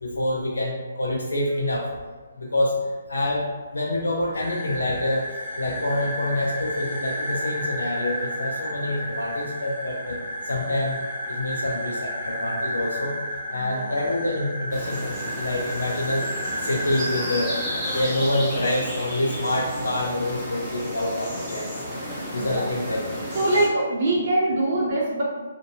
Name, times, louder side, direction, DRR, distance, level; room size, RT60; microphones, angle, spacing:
voice 1, 0.0-1.9 2.4-2.8 3.1-3.5 3.7-10.2 10.5-11.0 11.3-13.2 13.5-16.3 16.6-17.6 17.9-21.8 22.3-23.1, left 1 dB, 90° left, -2 dB, 0.4 m, -26 dB
sound 1, 4.3-18.0, equal, 25° left, 1.3 m, -32 dB
voice 2, 13.5-13.9 22.4-22.6 23.3-25.2, right 1 dB, 50° right, -6 dB, 0.7 m, -23 dB
sound 2, 14.7-23.7, equal, ahead, 0.7 m, -33 dB
2.5 x 2.2 x 2.6 m, 1.3 s
hypercardioid pair, 145°, 0 cm